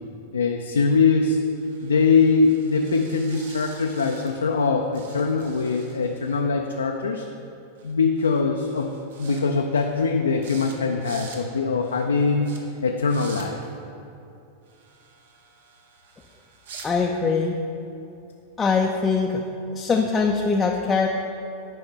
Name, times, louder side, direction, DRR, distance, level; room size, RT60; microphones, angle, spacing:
voice 1, 0.3-1.4 1.8-7.2 7.8-8.9 9.2-12.5 12.8-13.6, left 4 dB, 70° left, 3 dB, 0.4 m, -22 dB
sound 1, 1.6-4.7 4.9-6.4 7.8-7.9 8.2-8.4 8.7-9.4 9.7-10.1 10.4-10.7 11.0-11.4 11.8-12.0 12.4-12.6 13.0-13.5 14.7-16.9, right 5 dB, 60° right, 1.0 m, -46 dB
voice 2, 16.8-17.6 18.6-19.4 19.7-21.1, left 4 dB, 15° left, 1 dB, 0.5 m, -22 dB
10.5 x 5.2 x 3.8 m, 2.7 s
figure-of-eight pair, 90°, 0 cm